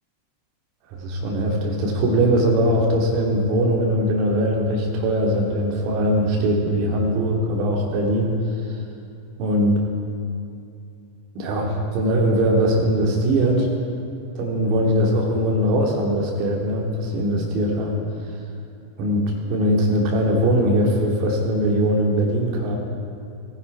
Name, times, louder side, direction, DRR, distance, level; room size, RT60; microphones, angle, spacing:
voice 1, 0.9-8.3 9.4-9.8 11.3-13.7 14.3-17.9 19.0-22.8, equal, 40° right, -1 dB, 2.6 m, -21 dB
14.5 x 10.5 x 4.7 m, 2.6 s
figure-of-eight pair, 90°, 0 cm